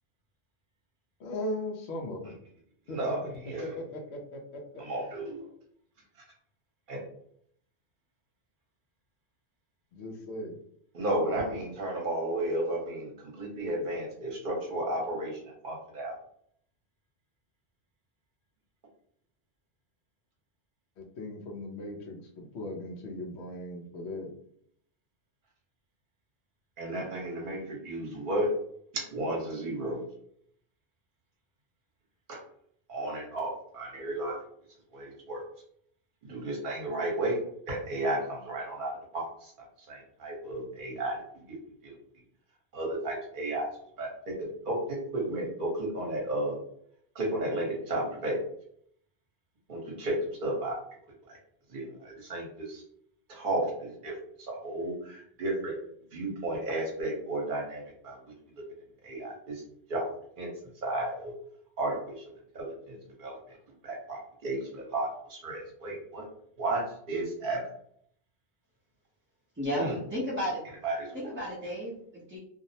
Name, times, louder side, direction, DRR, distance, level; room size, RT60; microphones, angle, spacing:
voice 1, 1.2-2.3 2.9-3.1 3.6-4.6 4.9-5.0 9.9-10.6 21.0-24.3, left 1 dB, 85° left, 1 dB, 0.8 m, -38 dB
voice 2, 2.9-3.7 4.8-5.4 6.9-7.0 10.9-16.1 26.8-28.5 28.9-30.0 32.3-32.4 32.9-34.4 34.9-35.4 36.2-37.4 37.7-39.5 39.8-41.2 41.5-41.6 41.8-41.9 42.7-43.7 44.0-46.6 47.1-48.4 49.7-50.8 51.3-51.4 51.7-52.8 53.3-55.8 56.1-58.3 59.0-59.6 59.9-60.1 60.4-60.5 60.8-61.3 61.8-62.2 62.5-63.6 63.8-66.2 66.6-67.6 69.7-70.0 70.8-71.2, right 1 dB, 55° right, -1 dB, 1.0 m, -33 dB
voice 3, 69.5-70.6 71.1-72.4, equal, 15° right, -8 dB, 0.4 m, -33 dB
2.5 x 2.0 x 2.6 m, 0.66 s
omnidirectional pair, 1.1 m